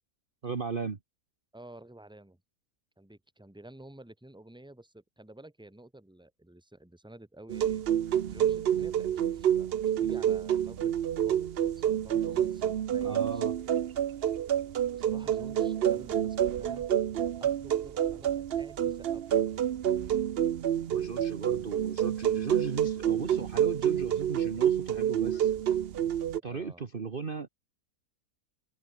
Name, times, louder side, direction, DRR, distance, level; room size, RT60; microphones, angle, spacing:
voice 1, 0.4-1.0 13.0-13.5 20.9-25.5 26.4-27.5, right 5 dB, 35° right, 1.4 m, -36 dB
voice 2, 1.5-2.4 3.0-7.8 8.3-13.6 14.9-16.9 17.1-19.4 26.4-26.8, right 1 dB, 5° right, 2.2 m, -51 dB
sound 1, 7.5-26.4, right 10 dB, 60° right, 0.6 m, -28 dB
omnidirectional pair, 1.7 m